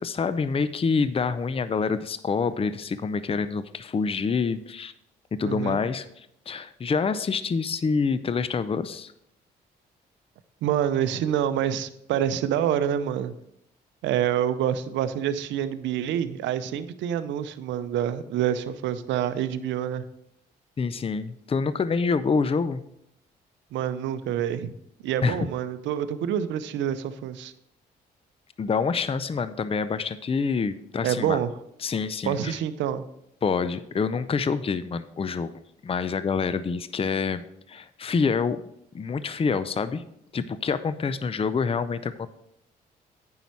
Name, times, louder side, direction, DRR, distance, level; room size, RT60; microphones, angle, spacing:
voice 1, 0.0-4.9 5.3-9.1 20.8-22.8 25.2-25.5 28.6-31.4 31.8-32.6 33.4-35.5 35.8-37.4 37.7-38.6 38.9-40.0 40.3-42.3, left 5 dB, 30° left, 14 dB, 0.6 m, -27 dB
voice 2, 5.4-5.8 10.6-13.3 14.0-20.0 23.7-24.7 25.0-27.5 31.0-31.5 32.2-33.0, right 10 dB, 75° right, 12 dB, 0.6 m, -27 dB
9.1 x 5.6 x 4.6 m, 0.76 s
hypercardioid pair, 50°, 19 cm